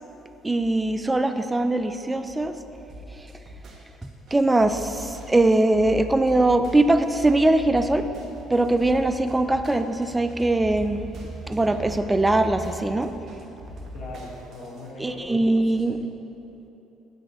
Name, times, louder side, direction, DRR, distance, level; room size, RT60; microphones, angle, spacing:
voice 1, 0.4-2.6 4.0-8.1 8.5-11.1 11.4-13.1 15.0-16.0, right 2 dB, 15° right, 9 dB, 0.4 m, -21 dB
sound 1, 2.9-14.9, left 1 dB, 55° right, 1.1 m, -42 dB
voice 2, 13.9-15.9, left 1 dB, 55° left, -3 dB, 1.6 m, -40 dB
8.1 x 3.2 x 6.3 m, 3.0 s
cardioid pair, 95°, 0 cm